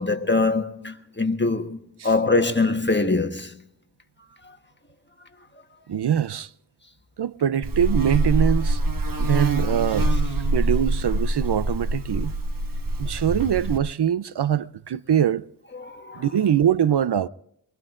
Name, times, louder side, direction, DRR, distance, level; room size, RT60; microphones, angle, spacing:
voice 1, 0.0-1.8 2.0-3.6 15.8-16.3, left 3 dB, 25° left, 1.2 m, -23 dB
voice 2, 5.9-6.5 7.2-8.8 9.2-10.1 10.5-12.3 13.0-15.4 16.1-17.3, right 9 dB, 70° right, 0.5 m, -23 dB
Buzz, 7.6-13.8, right 2 dB, 50° right, 1.1 m, -24 dB
24.0 x 22.0 x 2.5 m
wide cardioid pair, 70°, 42 cm